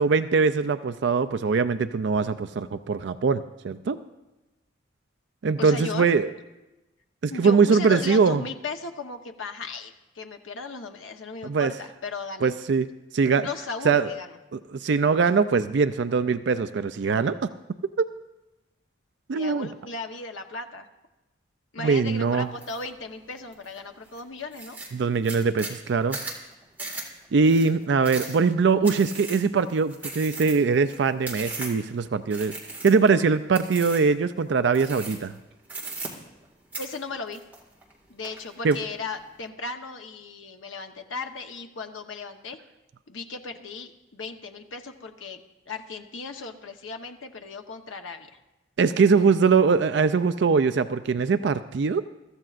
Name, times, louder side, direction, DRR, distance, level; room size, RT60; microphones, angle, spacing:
voice 1, 0.0-4.0 5.4-6.3 7.2-8.4 11.4-11.7 12.4-12.9 13.1-13.5 13.8-14.1 14.5-17.4 18.0-18.1 19.3-19.7 21.8-22.5 24.9-26.2 27.3-32.5 32.8-35.3 38.6-38.8 48.8-52.0, right 5 dB, 65° right, 11 dB, 0.4 m, -22 dB
voice 2, 5.6-6.1 7.3-12.5 13.4-14.4 19.3-20.9 21.7-24.8 36.8-37.4 38.1-42.6 43.1-45.4 45.7-48.3, left 4 dB, 90° left, 5 dB, 1.0 m, -36 dB
sound 1, 22.6-22.9 23.3-23.8 24.2-24.3 24.5-31.9 32.3-33.2 33.5-34.1 34.7-35.4 35.7-36.5 36.7-37.9 38.2-38.8, right 3 dB, 10° right, 1.9 m, -37 dB
22.5 x 14.0 x 2.5 m, 1.0 s
head